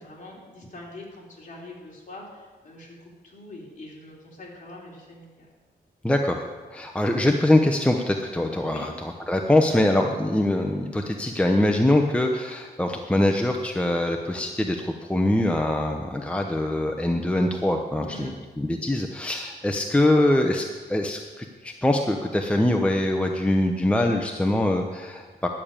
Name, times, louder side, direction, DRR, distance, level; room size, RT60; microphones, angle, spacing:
voice 1, 0.0-5.5 8.7-8.9 9.7-9.9 18.0-18.3, left 1 dB, 45° left, -3 dB, 3.4 m, -43 dB
voice 2, 6.0-6.4 6.7-25.5, left 1 dB, 5° left, 3 dB, 0.7 m, -23 dB
11.0 x 6.6 x 8.8 m, 1.4 s
wide cardioid pair, 115°, 18 cm